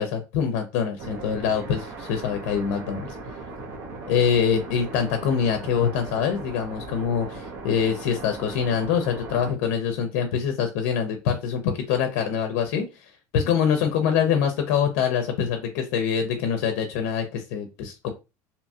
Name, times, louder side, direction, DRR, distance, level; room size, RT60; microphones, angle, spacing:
voice 1, 0.0-3.1 4.1-18.1, left 7 dB, 85° left, 5 dB, 0.5 m, -25 dB
sound 1, 1.0-9.5, right 3 dB, 50° right, 0.8 m, -38 dB
2.7 x 2.3 x 2.7 m, 0.27 s
cardioid pair, 175°, 8 cm